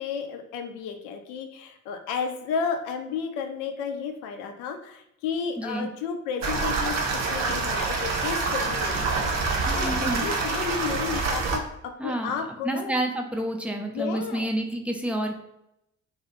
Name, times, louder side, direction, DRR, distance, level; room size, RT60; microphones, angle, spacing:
voice 1, 0.0-12.9 13.9-14.5, left 6 dB, 65° left, 6 dB, 0.5 m, -32 dB
voice 2, 5.6-5.9 9.7-10.3 12.0-15.4, right 1 dB, 5° right, 2 dB, 0.4 m, -29 dB
sound 1, 6.4-11.6, right 3 dB, 50° right, 0.7 m, -26 dB
2.7 x 2.3 x 2.9 m, 0.81 s
figure-of-eight pair, 45°, 35 cm